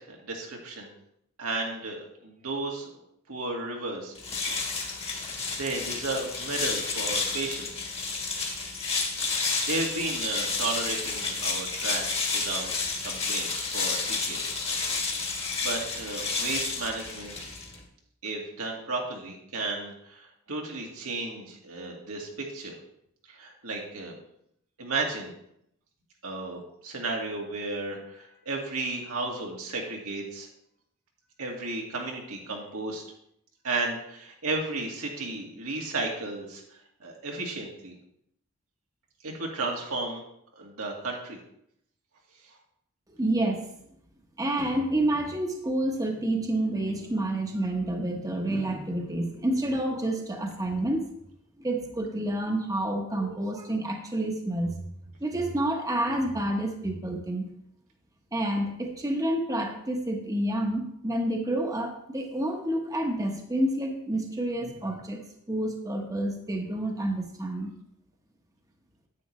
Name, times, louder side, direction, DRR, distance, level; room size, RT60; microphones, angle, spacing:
voice 1, 0.1-0.9 1.4-2.9 3.3-4.1 4.5-4.6 5.6-7.7 9.2-12.7 13.0-14.7 15.6-17.4 18.2-22.7 23.3-24.1 24.8-25.4 26.2-30.5 31.4-33.0 33.6-36.6 37.0-37.9 39.2-40.2 40.6-41.4, right 3 dB, 85° right, -1 dB, 2.0 m, -33 dB
sound 1, 4.1-17.8, left 4 dB, 30° left, 1.4 m, -31 dB
voice 2, 43.1-43.7 44.4-51.0 51.6-54.8 55.2-57.5 58.3-65.2 65.5-67.7, right 1 dB, 15° right, 2 dB, 1.0 m, -29 dB
9.6 x 8.5 x 3.2 m, 0.74 s
head